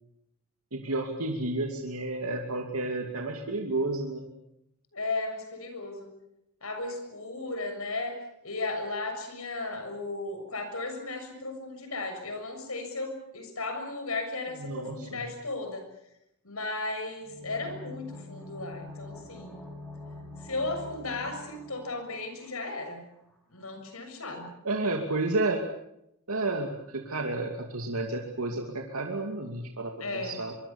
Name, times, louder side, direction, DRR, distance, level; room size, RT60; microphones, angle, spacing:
voice 1, 0.7-4.3 14.6-15.2 24.6-25.6 26.3-30.5, right 2 dB, 80° right, 2 dB, 2.7 m, -31 dB
voice 2, 4.9-6.1 6.6-8.2 8.4-15.9 16.4-19.6 20.4-23.0 23.5-24.5 30.0-30.4, left 2 dB, 80° left, 6 dB, 6.9 m, -35 dB
sound 1, 17.2-22.9 23.2-23.3, left 2 dB, 5° left, 6.4 m, -45 dB
24.5 x 24.0 x 7.2 m, 0.80 s
head